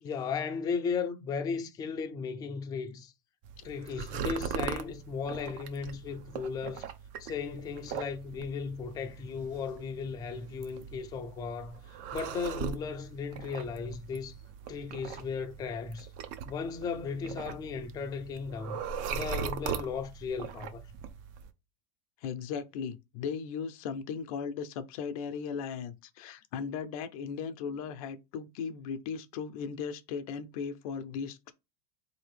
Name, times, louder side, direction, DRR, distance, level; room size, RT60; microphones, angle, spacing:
voice 1, 0.0-3.1 3.6-6.9 7.2-14.4 14.7-16.1 16.5-18.8 19.1-20.9, left 5 dB, 20° left, 0.4 m, -36 dB
sound 1, 3.4-21.5, right 7 dB, 45° right, 0.5 m, -40 dB
voice 2, 22.2-31.5, left 6 dB, 70° left, 0.6 m, -37 dB
4.0 x 2.7 x 3.1 m
supercardioid pair, 145°, 19 cm